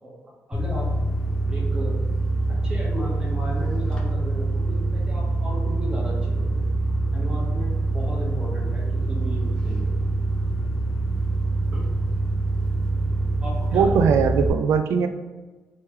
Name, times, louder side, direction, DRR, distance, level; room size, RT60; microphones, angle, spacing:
voice 1, 0.0-0.9 1.5-2.0 2.6-6.6 7.1-9.9 11.7-11.9 13.4-14.5, equal, 20° right, -4 dB, 1.1 m, -35 dB
sound 1, 0.5-14.5, right 2 dB, 20° left, 0.7 m, -25 dB
voice 2, 13.7-15.1, right 6 dB, 75° right, 8 dB, 0.3 m, -20 dB
3.1 x 3.0 x 3.4 m, 1.2 s
cardioid pair, 140°, 5 cm